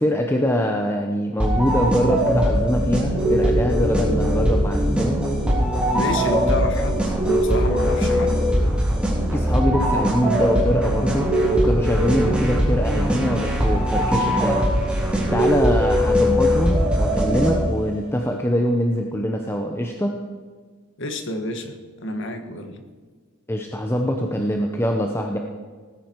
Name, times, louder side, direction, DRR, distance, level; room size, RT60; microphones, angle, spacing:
voice 1, 0.0-5.2 9.3-14.7 15.3-20.1 23.5-25.4, equal, 10° left, 2 dB, 0.8 m, -23 dB
sound 1, 1.4-17.9, equal, 5° right, 3.4 m, -20 dB
voice 2, 5.9-8.4 21.0-22.8, left 1 dB, 55° left, 6 dB, 1.6 m, -29 dB
18.5 x 10.0 x 4.7 m, 1.5 s
head